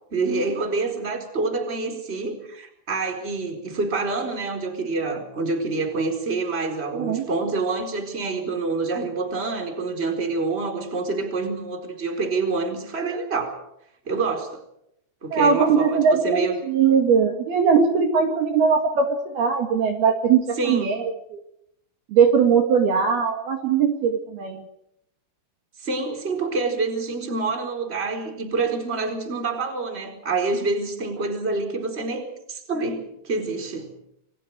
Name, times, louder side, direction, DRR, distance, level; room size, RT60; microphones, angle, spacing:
voice 1, 0.1-13.6 14.0-14.6 15.2-16.6 20.6-21.0 25.8-33.9, right 3 dB, 15° right, 5 dB, 3.8 m, -27 dB
voice 2, 6.9-7.3 15.3-21.1 22.1-24.6, right 6 dB, 55° right, 3 dB, 3.6 m, -20 dB
29.0 x 23.5 x 4.8 m, 0.77 s
omnidirectional pair, 6.0 m